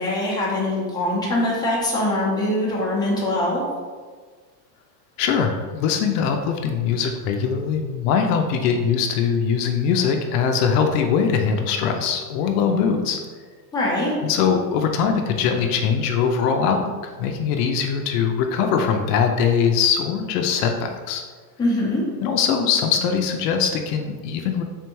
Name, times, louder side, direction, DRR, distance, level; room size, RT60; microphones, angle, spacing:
voice 1, 0.0-3.6 13.7-14.1 21.6-22.0, left 1 dB, 10° left, -6 dB, 0.8 m, -23 dB
voice 2, 5.2-13.2 14.2-16.8 17.2-21.2 22.2-24.6, left 6 dB, 70° left, 4 dB, 0.6 m, -21 dB
3.6 x 3.2 x 3.0 m, 1.5 s
supercardioid pair, 140°, 50 cm